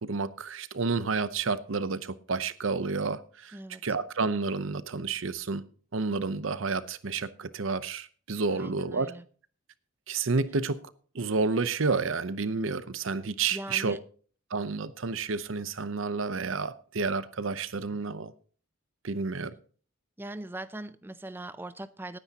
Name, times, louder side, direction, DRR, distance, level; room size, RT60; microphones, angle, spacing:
voice 1, 0.0-3.6 3.8-5.6 5.9-9.1 10.1-14.0 14.5-18.3 19.0-19.6, right 4 dB, 70° right, 0.8 m, -30 dB
voice 2, 3.5-3.8 8.5-9.2 13.5-14.0 20.2-22.2, right 1 dB, 10° right, 0.5 m, -40 dB
18.5 x 9.8 x 2.9 m
head